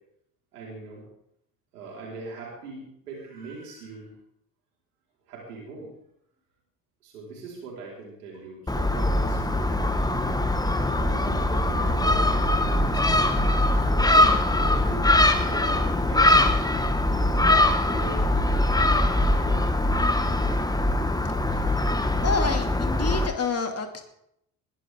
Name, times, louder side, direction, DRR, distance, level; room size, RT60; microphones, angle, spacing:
voice 1, 0.5-1.0 1.7-4.1 5.3-5.9 7.0-13.4 13.7-16.6 17.1-18.6 18.9-20.2, right 3 dB, 80° right, -3 dB, 4.8 m, -41 dB
Gull seagull, 8.7-23.3, left 1 dB, 10° left, 1.6 m, -22 dB
voice 2, 22.2-24.0, left 4 dB, 35° left, 5 dB, 2.6 m, -28 dB
20.0 x 13.0 x 3.8 m, 0.76 s
figure-of-eight pair, 50°, 45 cm